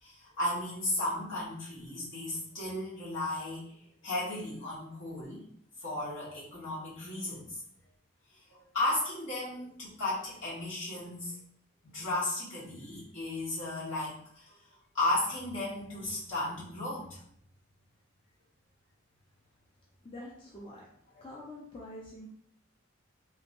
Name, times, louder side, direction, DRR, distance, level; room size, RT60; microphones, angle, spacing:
voice 1, 0.0-3.7 4.0-5.5 5.8-7.6 8.3-11.4 11.8-14.6 14.9-17.2 21.1-21.2, left 2 dB, 70° left, -8 dB, 1.4 m, -35 dB
voice 2, 20.0-20.9 21.2-22.3, left 1 dB, 25° left, -4 dB, 0.4 m, -45 dB
2.9 x 2.6 x 2.6 m, 0.67 s
head